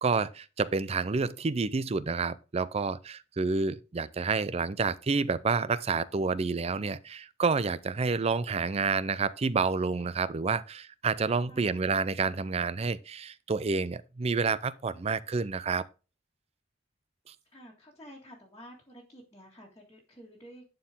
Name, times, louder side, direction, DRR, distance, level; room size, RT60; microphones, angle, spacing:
voice 1, 0.0-15.8, right 4 dB, 35° right, 0.5 m, -29 dB
voice 2, 11.5-11.9 17.5-20.6, equal, 20° left, 1.9 m, -51 dB
11.0 x 4.5 x 3.6 m
head